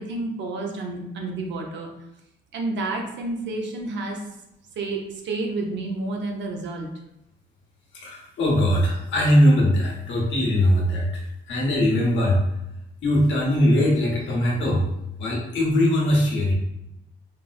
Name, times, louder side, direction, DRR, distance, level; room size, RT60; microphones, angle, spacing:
voice 1, 0.0-1.9 2.5-4.2 4.8-6.9, right 2 dB, 65° right, 2 dB, 0.7 m, -30 dB
voice 2, 7.9-12.4 13.0-14.8 15.2-16.5, equal, 70° left, -2 dB, 1.0 m, -21 dB
4.1 x 2.0 x 2.4 m, 0.86 s
cardioid pair, 90°, 20 cm